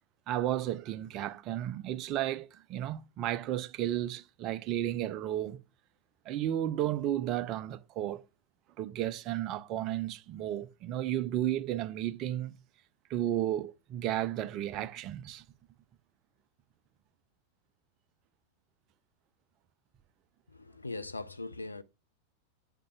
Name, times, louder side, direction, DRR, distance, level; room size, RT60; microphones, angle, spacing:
voice 1, 0.3-5.6 6.3-8.2 8.8-12.5 13.1-15.4, right 12 dB, 35° right, 0.6 m, -33 dB
voice 2, 20.5-21.8, left 2 dB, 80° left, 0.4 m, -40 dB
10.5 x 6.6 x 2.2 m
figure-of-eight pair, 90°, 0 cm